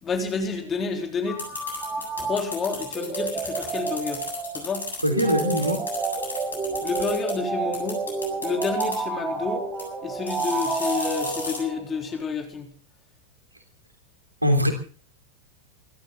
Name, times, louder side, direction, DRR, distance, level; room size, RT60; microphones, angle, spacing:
voice 1, 0.0-1.4 2.2-4.2 4.5-4.8 6.8-8.0 8.4-9.6 10.0-12.7, left 5 dB, 20° left, 3 dB, 3.7 m, -29 dB
sound 1, 1.3-12.0, right 4 dB, 20° right, 6.5 m, -30 dB
sound 2, 1.4-7.3 7.7-9.0 9.8-9.9 10.3-11.6, left 3 dB, 75° left, 8.0 m, -34 dB
voice 2, 5.0-5.8 14.4-14.7, equal, 85° right, 4 dB, 3.1 m, -21 dB
26.5 x 13.0 x 4.0 m, 0.41 s
figure-of-eight pair, 90°, 0 cm